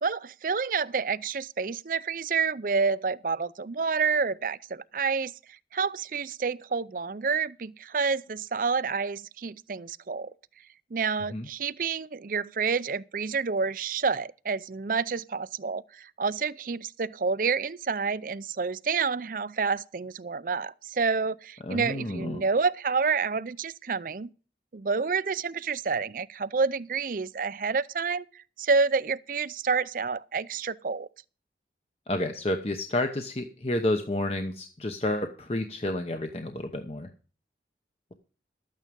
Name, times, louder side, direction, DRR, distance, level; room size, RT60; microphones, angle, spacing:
voice 1, 0.0-5.3 5.7-10.3 10.9-24.3 24.7-31.1, right 5 dB, 50° right, 0.5 m, -29 dB
voice 2, 21.7-22.4 32.1-37.1, left 1 dB, 35° left, 0.9 m, -30 dB
12.5 x 9.1 x 5.3 m
head